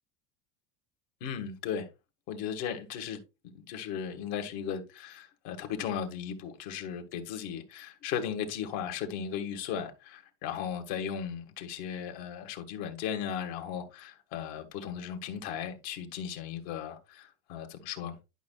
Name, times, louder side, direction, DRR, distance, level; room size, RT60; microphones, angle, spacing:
voice 1, 1.2-1.9 2.3-3.2 3.5-18.2, left 8 dB, 65° left, 1.7 m, -36 dB
11.0 x 5.5 x 2.3 m
supercardioid pair, 145°, 37 cm